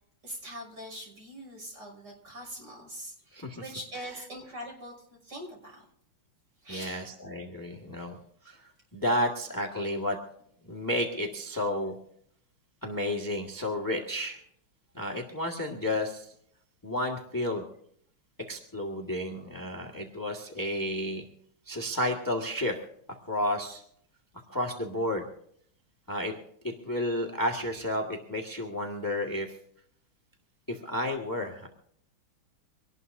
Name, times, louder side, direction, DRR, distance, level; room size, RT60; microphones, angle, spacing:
voice 1, 0.2-5.9 6.6-7.1 8.0-8.1, equal, 55° right, 1 dB, 6.8 m, -43 dB
voice 2, 6.7-8.2 8.4-10.2 10.7-11.9 12.8-14.4 14.9-16.3 16.8-17.6 18.5-21.2 21.7-22.8 23.3-23.8 24.5-25.3 26.1-26.3 26.8-29.5 30.7-31.7, left 1 dB, 10° left, 0 dB, 1.6 m, -31 dB
25.0 x 19.0 x 2.7 m, 0.69 s
omnidirectional pair, 2.3 m